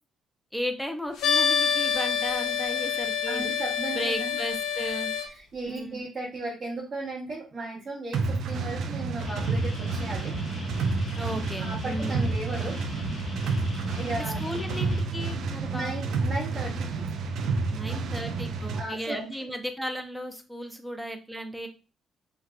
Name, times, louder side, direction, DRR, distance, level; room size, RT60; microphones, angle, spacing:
voice 1, 0.5-3.5 3.9-5.1 5.7-6.0 11.2-12.3 14.1-15.9 17.7-21.7, equal, ahead, 5 dB, 0.6 m, -35 dB
sound 1, 1.2-5.3, left 7 dB, 85° left, 0.6 m, -27 dB
voice 2, 3.3-4.4 5.3-10.4 11.6-12.8 14.0-14.6 15.7-17.0 17.9-18.3 18.7-19.2, right 2 dB, 45° right, -4 dB, 0.8 m, -36 dB
sound 2, 8.1-18.9, right 4 dB, 75° right, 0.4 m, -30 dB
sound 3, 9.2-15.0, left 3 dB, 50° left, 0.8 m, -38 dB
3.3 x 2.4 x 2.4 m, 0.34 s
cardioid pair, 90°, 0 cm